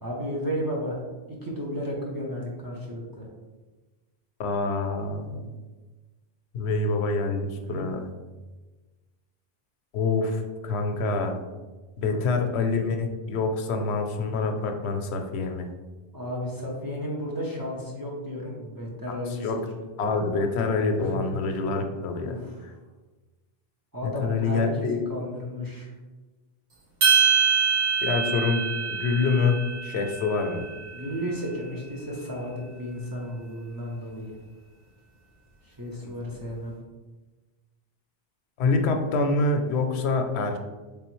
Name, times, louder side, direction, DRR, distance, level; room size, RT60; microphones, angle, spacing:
voice 1, 0.0-1.0 1.3-3.3 7.7-7.8 12.1-12.5 16.1-19.8 21.0-21.2 22.2-22.6 23.9-25.9 30.9-34.3 35.6-36.7, equal, 25° right, -4 dB, 0.7 m, -33 dB
voice 2, 4.4-5.4 6.5-8.0 9.9-11.4 12.0-15.7 19.4-19.6 20.0-22.4 24.0-25.0 28.0-28.6 28.9-30.7 36.0-36.1 38.6-40.6, left 3 dB, 85° left, 5 dB, 0.8 m, -26 dB
sound 1, 27.0-31.4, right 6 dB, 45° right, 1.2 m, -25 dB
3.6 x 3.4 x 3.0 m, 1.2 s
omnidirectional pair, 1.1 m